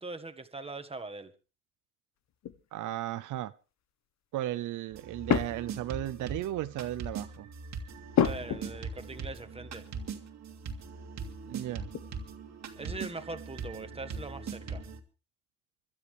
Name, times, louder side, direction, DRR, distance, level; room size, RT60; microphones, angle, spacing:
voice 1, 0.0-1.3 8.2-9.9 12.8-14.8, right 3 dB, 20° right, 1.7 m, -41 dB
sound 1, 2.3-2.7 5.3-6.0 6.5-6.8 8.1-9.1 9.5-9.6 11.9-12.3 12.5-13.2, left 9 dB, 65° left, 1.1 m, -31 dB
voice 2, 2.7-3.5 4.3-7.5 11.5-11.9, right 14 dB, 80° right, 0.7 m, -35 dB
sound 2, 4.9-15.0, right 5 dB, 65° right, 2.3 m, -41 dB
25.5 x 12.5 x 3.4 m
cardioid pair, 90°, 30 cm